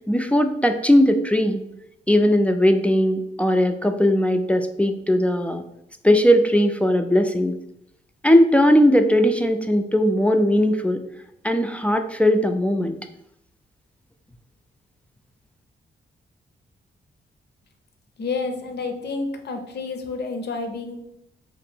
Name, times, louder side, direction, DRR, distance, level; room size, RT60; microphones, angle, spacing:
voice 1, 0.1-1.6 2.1-5.6 6.0-7.6 8.2-11.0 11.4-12.9, equal, 5° left, 7 dB, 0.3 m, -18 dB
voice 2, 18.2-21.0, left 4 dB, 60° left, 6 dB, 0.6 m, -29 dB
3.0 x 2.5 x 4.4 m, 0.81 s
cardioid pair, 80°, 19 cm